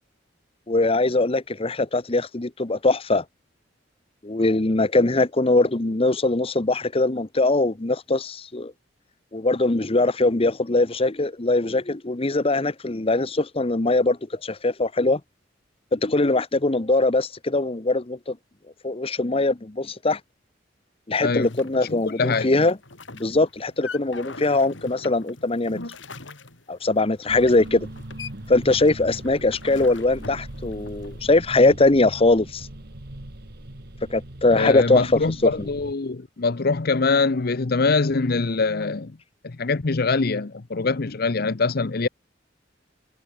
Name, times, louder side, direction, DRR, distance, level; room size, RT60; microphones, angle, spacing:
voice 1, 0.7-3.2 4.2-8.7 9.3-15.2 15.9-18.4 18.8-20.2 21.1-22.8 23.1-25.8 26.7-27.9 28.5-32.7 34.1-35.1 35.4-35.5, left 2 dB, 30° left, 1.0 m, -21 dB
sound 1, 21.4-31.3, left 3 dB, 80° left, 4.7 m, -42 dB
voice 2, 22.1-22.5 34.5-39.1 39.4-42.1, left 4 dB, 55° left, 0.7 m, -23 dB
sound 2, 27.3-35.9, right 1 dB, 55° right, 2.0 m, -39 dB
head